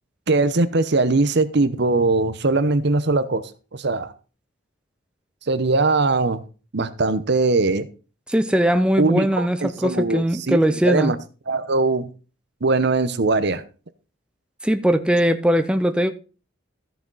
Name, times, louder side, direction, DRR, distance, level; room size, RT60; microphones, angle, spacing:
voice 1, 0.3-3.4 3.7-4.1 5.5-6.4 6.7-7.9 9.0-11.2 11.5-12.1 12.6-13.6, right 3 dB, 60° right, 0.9 m, -21 dB
voice 2, 8.3-11.1 14.6-16.1, equal, 5° right, 0.6 m, -20 dB
14.0 x 6.8 x 4.0 m
head